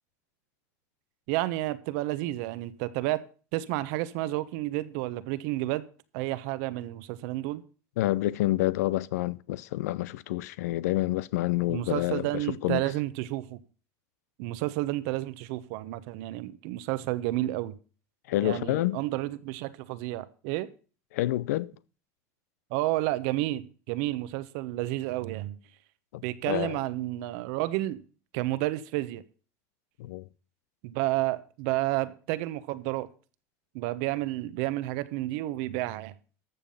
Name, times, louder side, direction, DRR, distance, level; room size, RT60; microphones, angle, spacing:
voice 1, 1.3-3.2 3.5-5.8 6.1-7.6 11.7-13.6 14.4-17.7 18.4-20.7 22.7-25.6 26.2-28.0 28.3-29.2 30.8-33.1 33.7-36.1, right 17 dB, 70° right, 1.1 m, -31 dB
voice 2, 8.0-12.8 18.3-19.0 21.1-21.7 26.1-26.8 30.0-30.3, left 16 dB, 85° left, 0.6 m, -28 dB
13.5 x 7.1 x 5.6 m
supercardioid pair, 110°, 8 cm